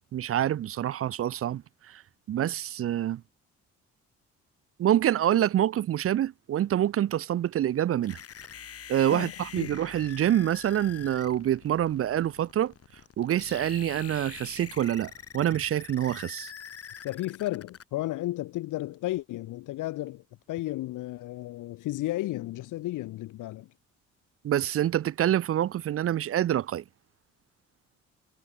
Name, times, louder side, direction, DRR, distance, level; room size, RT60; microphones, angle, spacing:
voice 1, 0.1-2.0 2.3-3.2 4.8-8.2 8.9-12.7 13.2-16.5 24.4-26.8, right 11 dB, 50° right, 0.5 m, -26 dB
sound 1, 8.0-17.8, left 8 dB, 50° left, 3.1 m, -45 dB
voice 2, 9.1-9.8 17.0-23.7, left 16 dB, 90° left, 2.6 m, -33 dB
cardioid pair, 90°, 30 cm